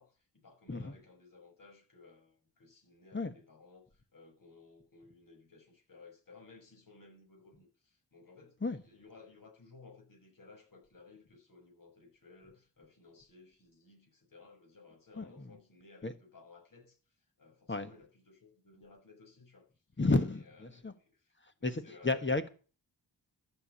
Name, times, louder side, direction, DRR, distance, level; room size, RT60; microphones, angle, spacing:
voice 1, 0.0-17.0 17.4-19.7 20.3-21.3 21.6-22.3, left 4 dB, 50° left, 6.7 m, -58 dB
voice 2, 20.0-20.9 21.6-22.5, left 3 dB, 25° left, 1.4 m, -31 dB
14.0 x 7.0 x 8.6 m
wide cardioid pair, 95°, 42 cm